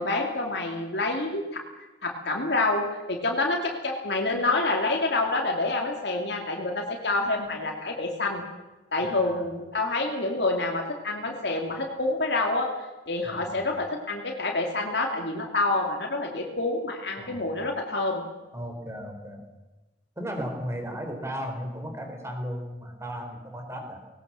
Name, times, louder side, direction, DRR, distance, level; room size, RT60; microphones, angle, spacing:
voice 1, 0.0-1.6 2.0-8.4 8.9-12.7 13.1-18.2, left 2 dB, 65° left, 0 dB, 2.6 m, -27 dB
voice 2, 9.0-9.5 13.2-13.6 17.2-17.5 18.5-19.4 20.2-24.0, equal, 15° right, 4 dB, 4.1 m, -35 dB
19.5 x 18.5 x 7.6 m, 1.1 s
head